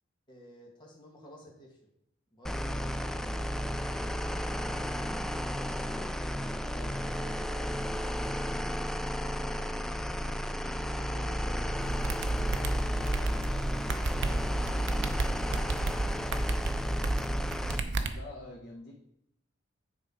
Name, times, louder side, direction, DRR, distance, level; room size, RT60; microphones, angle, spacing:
voice 1, 0.3-1.8 2.3-6.2 6.8-10.2 10.8-13.6 14.0-16.9, equal, 25° left, -2 dB, 2.0 m, -53 dB
sound 1, 2.4-17.8, equal, 5° left, 0.3 m, -33 dB
voice 2, 6.7-7.0 18.1-18.9, left 2 dB, 60° left, -3 dB, 1.2 m, -46 dB
sound 2, 11.8-18.1, right 2 dB, 65° right, 0.7 m, -32 dB
9.7 x 3.7 x 5.0 m, 0.75 s
head